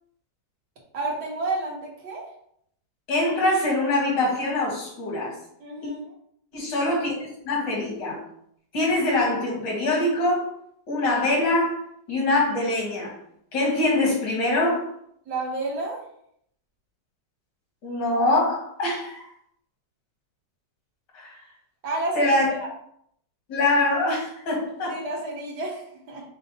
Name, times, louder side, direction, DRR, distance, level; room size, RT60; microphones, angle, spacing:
voice 1, 0.9-2.3 5.6-6.1 15.3-16.0 21.8-22.3 22.6-22.7 24.9-26.2, right 2 dB, 70° right, -2 dB, 1.7 m, -30 dB
voice 2, 3.1-5.4 5.8-5.9 6.5-7.1 7.4-8.2 8.7-10.5 10.9-11.8 12.1-13.1 13.5-14.9 17.8-19.2 21.1-21.3 22.1-22.5 23.5-25.0, left 2 dB, 85° left, -3 dB, 2.2 m, -23 dB
5.5 x 2.0 x 4.0 m, 0.70 s
omnidirectional pair, 1.9 m